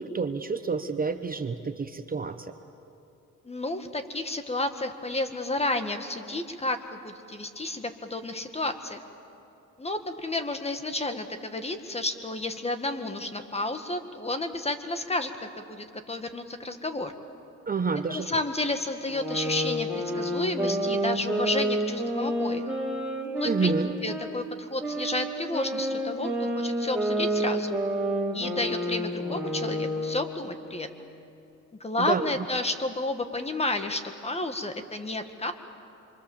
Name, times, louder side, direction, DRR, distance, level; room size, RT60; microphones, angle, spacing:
voice 1, 0.0-2.5 17.7-18.3 23.4-23.9 32.0-32.3, right 4 dB, 30° right, 8 dB, 1.1 m, -29 dB
voice 2, 3.4-9.0 9.8-17.1 18.1-22.7 23.3-23.7 24.0-27.8 28.3-31.1 31.8-35.5, left 2 dB, 20° left, 8 dB, 1.8 m, -31 dB
sound 1, 19.1-24.3 24.8-30.4, equal, 5° right, 4.9 m, -29 dB
27.5 x 23.5 x 7.4 m, 2.9 s
cardioid pair, 90°, 30 cm